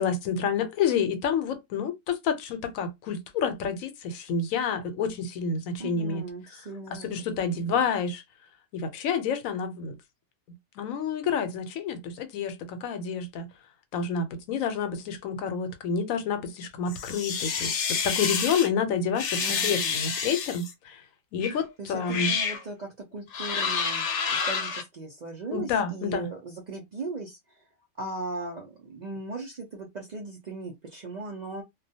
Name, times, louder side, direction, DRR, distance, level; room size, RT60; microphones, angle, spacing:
voice 1, 0.0-6.2 6.9-8.2 8.7-9.9 10.8-13.5 13.9-17.8 18.0-21.0 21.3-22.3 25.5-26.3, left 6 dB, 90° left, 1.0 m, -29 dB
voice 2, 5.8-7.1 7.5-7.8 19.4-20.0 21.8-24.0 24.3-27.6 28.0-31.6, right 3 dB, 60° right, 0.4 m, -38 dB
sound 1, 16.9-18.7 19.1-20.7 21.4-21.6 22.0-22.6 23.3-24.8, left 6 dB, 65° left, 0.9 m, -29 dB
2.3 x 2.2 x 2.6 m
omnidirectional pair, 1.4 m